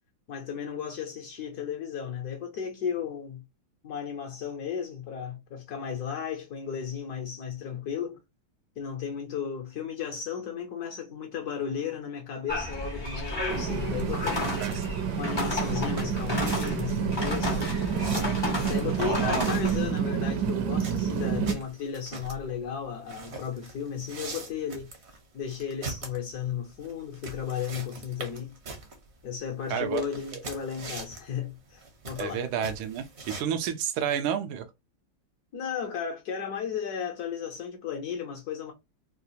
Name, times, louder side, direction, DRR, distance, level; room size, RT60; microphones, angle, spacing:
voice 1, 0.3-3.4 3.8-8.2 8.8-17.7 18.5-24.9 25.3-28.5 29.2-32.4 35.5-38.7, left 7 dB, 65° left, 1.0 m, -34 dB
sound 1, 12.5-19.8, left 2 dB, 35° left, 0.4 m, -32 dB
sound 2, 13.5-21.5, right 7 dB, 65° right, 1.1 m, -29 dB
sound 3, 14.0-33.4, right 3 dB, 50° right, 0.8 m, -43 dB
voice 2, 19.0-19.5 29.7-30.0 30.3-30.4 32.2-34.7, right 8 dB, 85° right, 1.5 m, -30 dB
3.7 x 2.4 x 2.7 m
omnidirectional pair, 2.3 m